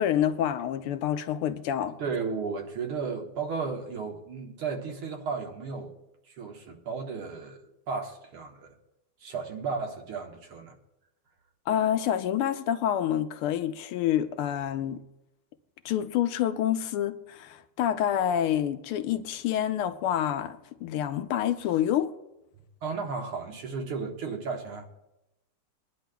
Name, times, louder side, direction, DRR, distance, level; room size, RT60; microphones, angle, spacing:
voice 1, 0.0-2.0 11.7-15.0 15.8-22.1, left 10 dB, 85° left, 1.6 m, -27 dB
voice 2, 2.0-5.9 6.4-8.8 9.2-10.8 22.8-24.9, right 5 dB, 80° right, 2.2 m, -34 dB
23.5 x 10.5 x 2.3 m
omnidirectional pair, 2.4 m